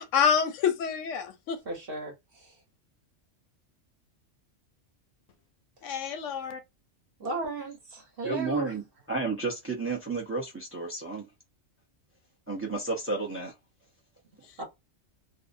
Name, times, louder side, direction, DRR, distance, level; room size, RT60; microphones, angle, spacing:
voice 1, 0.0-1.6 5.8-6.6, left 7 dB, 85° left, 0.9 m, -27 dB
voice 2, 1.6-2.5 7.2-7.7 8.2-8.7 14.6-14.7, right 3 dB, 50° right, 1.1 m, -34 dB
voice 3, 8.2-11.3 12.5-13.5, right 3 dB, 15° right, 0.5 m, -32 dB
2.6 x 2.0 x 2.4 m
omnidirectional pair, 1.3 m